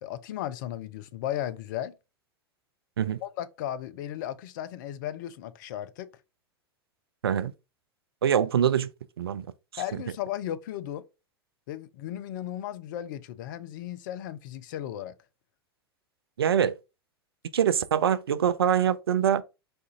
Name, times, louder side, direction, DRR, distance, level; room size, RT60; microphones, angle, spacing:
voice 1, 0.0-1.9 3.2-6.1 9.8-11.0 11.7-15.1, left 11 dB, 50° left, 0.5 m, -35 dB
voice 2, 8.2-8.9 9.2-9.5 9.7-9.8 16.4-16.7 17.5-19.4, right 9 dB, 70° right, 0.4 m, -24 dB
4.3 x 2.4 x 3.7 m
figure-of-eight pair, 90°, 13 cm